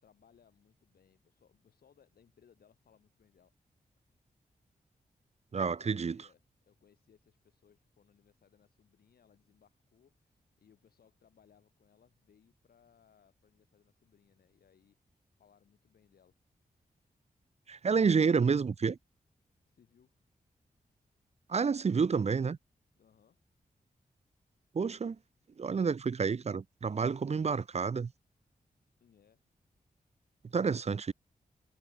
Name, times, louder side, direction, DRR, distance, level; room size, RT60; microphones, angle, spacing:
voice 1, 0.0-3.5 5.6-16.4 19.7-20.1 23.0-23.4 29.0-29.4, left 8 dB, 85° left, 5.5 m, -67 dB
voice 2, 5.5-6.2 17.7-19.0 21.5-22.6 24.7-25.2 25.6-28.1 30.5-31.1, right 5 dB, 45° right, 0.7 m, -29 dB
cardioid pair, 55°, 15 cm